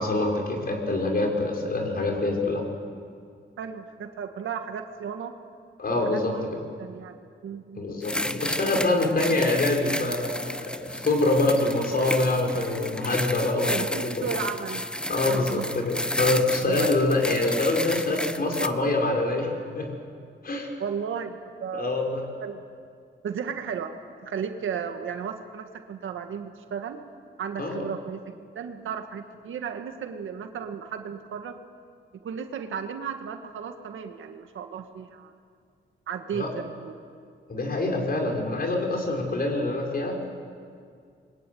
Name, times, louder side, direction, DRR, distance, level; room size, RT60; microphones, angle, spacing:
voice 1, 0.0-2.6 5.8-6.3 7.8-14.3 15.1-19.5 19.8-19.9 20.4-20.7 21.7-22.2 27.6-27.8 36.3-36.5 37.5-40.3, left 2 dB, 50° left, 1 dB, 5.6 m, -25 dB
voice 2, 3.6-5.4 5.9-6.5 6.8-7.1 7.4-7.8 13.7-15.7 16.6-17.2 20.8-21.3 21.6-21.9 22.4-22.6 23.2-23.9 24.2-27.0 27.4-31.6 32.2-35.3 36.1-37.0, right 7 dB, 85° right, 6 dB, 1.9 m, -34 dB
sound 1, 8.0-18.7, left 1 dB, 5° left, 0.8 m, -32 dB
26.5 x 22.0 x 9.5 m, 2.2 s
cardioid pair, 110°, 20 cm